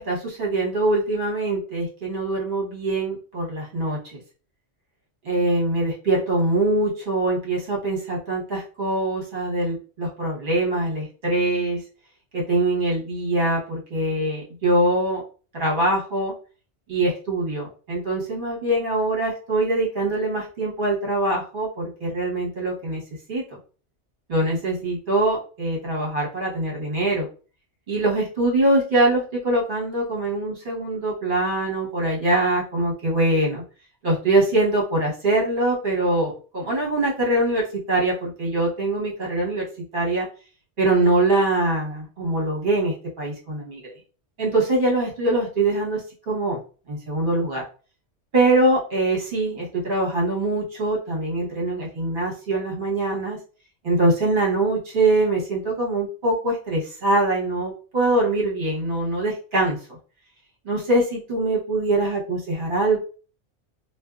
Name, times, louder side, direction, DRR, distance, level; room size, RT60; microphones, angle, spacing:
voice 1, 0.0-4.2 5.2-11.8 12.3-15.2 15.5-16.3 16.9-23.0 23.3-23.4 24.3-27.3 27.9-33.6 34.0-39.6 39.9-40.3 40.8-43.8 44.4-46.0 46.3-46.6 46.9-47.6 48.3-53.4 53.8-59.8 60.6-63.0, right 2 dB, 45° right, -3 dB, 1.2 m, -23 dB
2.5 x 2.2 x 2.3 m, 0.37 s
omnidirectional pair, 1.2 m